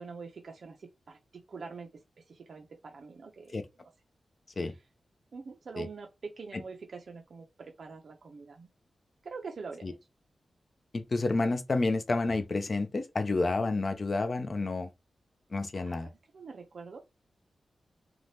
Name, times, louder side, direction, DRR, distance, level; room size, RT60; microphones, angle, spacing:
voice 1, 0.0-2.0 2.3-3.9 4.6-4.8 5.3-8.7 9.2-10.0 15.7-17.0, right 4 dB, 50° right, 0.4 m, -45 dB
voice 2, 10.9-14.9 15.5-16.1, left 3 dB, 35° left, 0.4 m, -29 dB
2.7 x 2.1 x 3.2 m
wide cardioid pair, 170°, 0 cm